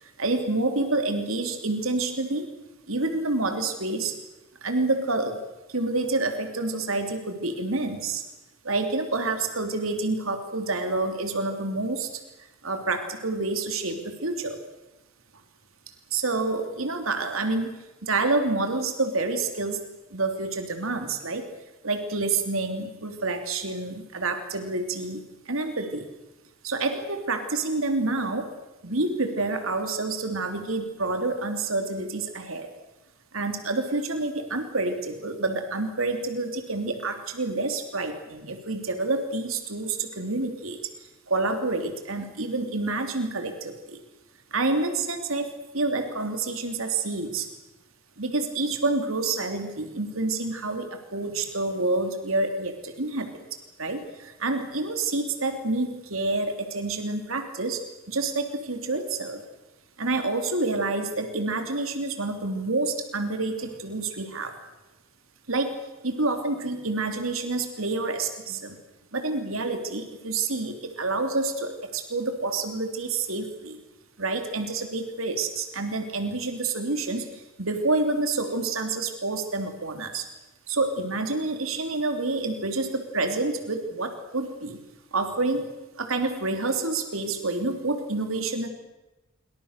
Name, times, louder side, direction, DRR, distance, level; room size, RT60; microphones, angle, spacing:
voice 1, 0.0-2.5 2.9-4.1 4.6-5.4 5.7-8.2 8.6-12.2 12.6-14.6 16.1-17.7 18.0-19.8 20.1-21.4 21.8-26.1 26.6-28.5 28.8-32.7 33.3-40.8 41.3-44.0 44.5-47.5 48.2-53.4 53.8-59.4 60.0-64.5 65.5-65.7 66.0-68.7 69.1-73.8 74.2-80.3 80.7-84.8 85.1-85.7 86.0-88.7, right 3 dB, 80° right, 6 dB, 3.2 m, -28 dB
27.0 x 24.5 x 6.7 m, 1.0 s
head